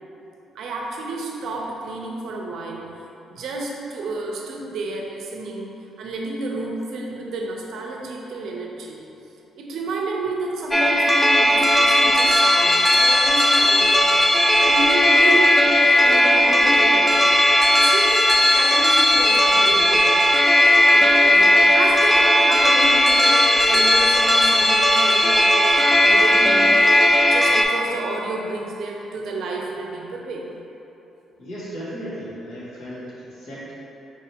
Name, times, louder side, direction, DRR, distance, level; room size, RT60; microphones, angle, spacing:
voice 1, 0.5-2.9 3.3-9.0 9.6-14.2 14.6-15.6 16.0-17.4 17.7-20.2 20.9-30.6, right 2 dB, 70° right, 0 dB, 0.6 m, -31 dB
sound 1, 10.7-27.6, left 1 dB, 5° left, 0.3 m, -16 dB
voice 2, 31.4-33.7, equal, 85° left, -9 dB, 1.3 m, -35 dB
4.6 x 3.3 x 2.8 m, 2.9 s
cardioid pair, 90°, 0 cm